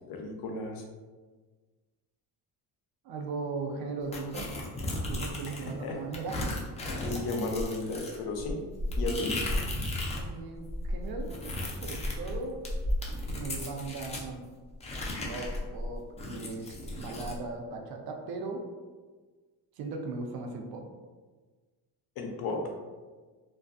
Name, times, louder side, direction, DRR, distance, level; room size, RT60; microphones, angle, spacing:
voice 1, 0.1-0.8 5.4-6.0 6.9-8.6 9.0-9.4 22.2-22.7, left 2 dB, 70° left, 2 dB, 0.6 m, -34 dB
voice 2, 3.0-4.6 5.1-6.5 10.2-12.6 13.3-14.4 15.2-18.6 19.8-20.9, right 3 dB, 70° right, 2 dB, 0.5 m, -38 dB
sound 1, 4.1-5.7 6.1-10.3 10.6-14.3 14.8-17.4, left 1 dB, 20° left, 0.3 m, -34 dB
2.5 x 2.3 x 2.3 m, 1.4 s
cardioid pair, 105°, 39 cm